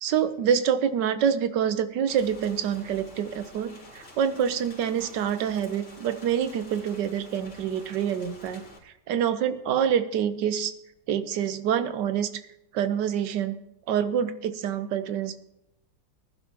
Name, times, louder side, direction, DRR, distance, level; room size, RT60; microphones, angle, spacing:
voice 1, 0.0-10.7 11.1-12.4 12.7-13.6 13.9-15.4, right 8 dB, 75° right, 12 dB, 1.4 m, -26 dB
Rain, 2.1-8.8, left 1 dB, 65° left, 3.8 m, -48 dB
19.5 x 11.0 x 2.9 m, 0.87 s
omnidirectional pair, 1.9 m